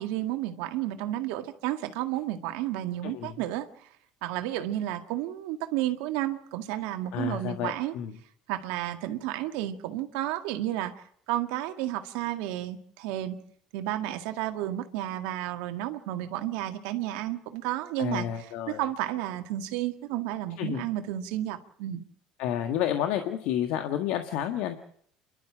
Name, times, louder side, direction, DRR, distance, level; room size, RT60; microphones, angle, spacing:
voice 1, 0.0-3.7 4.2-7.9 8.5-13.4 13.7-18.3 18.7-22.0, right 14 dB, 80° right, 7 dB, 1.9 m, -32 dB
voice 2, 3.0-3.3 7.1-8.1 18.0-18.8 20.6-20.8 22.4-24.8, left 10 dB, 75° left, 6 dB, 1.7 m, -30 dB
28.5 x 12.5 x 7.7 m, 0.64 s
supercardioid pair, 80°, 2 cm